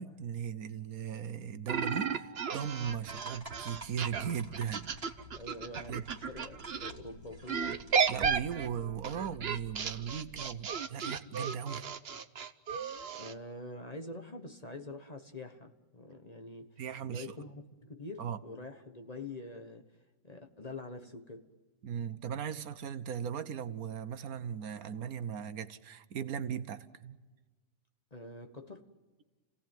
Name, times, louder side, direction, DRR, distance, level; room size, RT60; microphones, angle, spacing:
voice 1, 0.0-5.0 5.9-6.0 8.1-11.9 16.8-17.3 18.2-18.4 21.8-27.2, right 8 dB, 75° right, 1.4 m, -38 dB
sound 1, 1.7-6.9 7.5-13.3, right 6 dB, 45° right, 1.1 m, -34 dB
sound 2, 3.0-8.3, right 2 dB, 25° right, 2.2 m, -51 dB
sound 3, 3.7-10.3, right 1 dB, 5° right, 2.3 m, -55 dB
voice 2, 5.3-7.9 13.1-16.8 17.1-21.5 28.1-28.9, left 2 dB, 30° left, 1.3 m, -46 dB
30.0 x 17.0 x 9.2 m
omnidirectional pair, 1.6 m